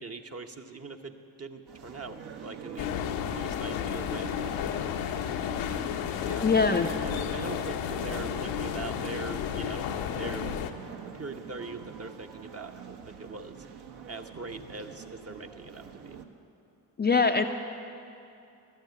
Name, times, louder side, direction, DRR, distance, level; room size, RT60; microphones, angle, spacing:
voice 1, 0.0-2.9 3.2-4.4 6.2-10.5 11.1-13.5 14.1-16.2, right 3 dB, 30° right, 6 dB, 1.0 m, -41 dB
sound 1, 1.7-16.2, right 7 dB, 55° right, 1.1 m, -45 dB
sound 2, 2.8-10.7, left 9 dB, 70° left, 0.8 m, -32 dB
voice 2, 6.4-6.9 17.0-17.5, left 4 dB, 20° left, 5 dB, 0.5 m, -22 dB
12.0 x 6.8 x 9.3 m, 2.6 s
hypercardioid pair, 45°, 48 cm